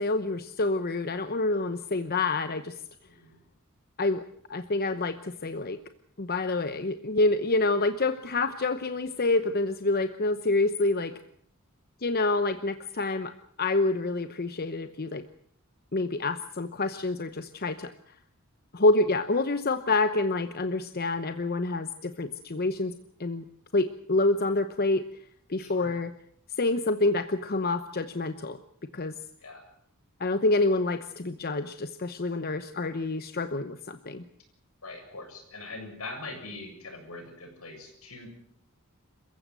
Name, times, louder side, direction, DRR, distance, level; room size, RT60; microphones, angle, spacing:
voice 1, 0.0-2.7 4.0-4.2 4.5-5.8 6.2-11.2 12.0-13.3 13.6-15.3 15.9-17.9 18.7-22.9 23.2-23.4 23.7-25.0 25.5-26.1 26.6-28.6 28.9-29.1 30.2-34.2, left 2 dB, 45° left, 10 dB, 0.9 m, -27 dB
voice 2, 3.0-3.4 25.6-26.0 29.4-29.7 34.8-38.3, left 3 dB, 80° left, 4 dB, 7.3 m, -42 dB
28.0 x 15.0 x 7.7 m, 0.66 s
head